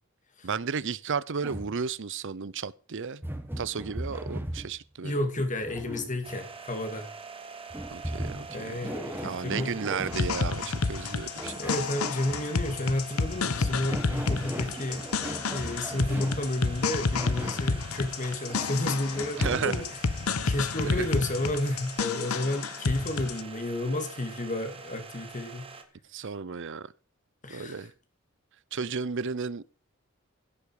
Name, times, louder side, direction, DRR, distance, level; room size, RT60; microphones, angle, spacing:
voice 1, 0.4-3.2 3.6-5.2 7.9-8.7 9.2-11.5 19.4-19.8 20.8-21.2 26.1-26.9 27.5-27.9 28.7-29.6, right 5 dB, 60° right, 0.7 m, -33 dB
sound 1, 1.4-1.8 3.2-4.8 5.6-6.3 7.7-10.3 11.4-12.5 13.6-16.5 17.1-17.7 18.5-19.9, right 1 dB, 10° right, 1.5 m, -38 dB
voice 2, 5.0-7.1 8.5-9.8 11.6-15.1 15.4-19.8 20.4-25.7 27.4-27.9, left 1 dB, 35° left, 2.6 m, -31 dB
sound 2, 6.2-25.8, right 4 dB, 25° right, 1.8 m, -45 dB
sound 3, 10.1-23.4, left 4 dB, 90° left, 0.9 m, -30 dB
16.0 x 8.3 x 4.9 m
head